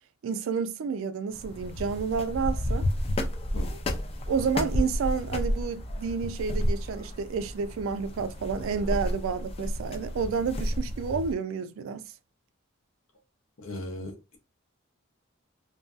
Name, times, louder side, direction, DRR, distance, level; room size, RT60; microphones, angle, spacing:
voice 1, 0.2-2.9 3.7-3.8 4.3-12.0, right 5 dB, 70° right, 0.3 m, -30 dB
sound 1, 1.3-11.3, left 1 dB, 30° left, 0.3 m, -31 dB
voice 2, 13.6-14.4, left 1 dB, 70° left, 0.7 m, -38 dB
2.5 x 2.2 x 2.3 m
head